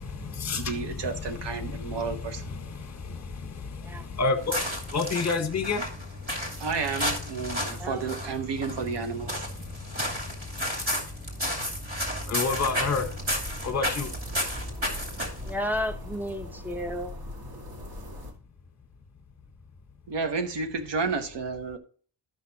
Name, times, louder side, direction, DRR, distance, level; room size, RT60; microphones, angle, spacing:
voice 1, 0.0-6.7 7.4-7.9 8.8-8.9 9.3-13.2 13.6-14.1, left 4 dB, 40° left, 1.5 m, -32 dB
voice 2, 0.6-2.4 6.6-9.3 20.1-21.8, right 4 dB, 75° right, 1.4 m, -31 dB
sound 1, 4.4-15.5, equal, 30° right, 2.8 m, -32 dB
voice 3, 7.6-8.1 15.4-17.2, equal, 5° right, 0.9 m, -33 dB
sound 2, 12.6-18.3, left 1 dB, 60° right, 2.2 m, -41 dB
13.0 x 5.8 x 3.0 m
wide cardioid pair, 150°, 42 cm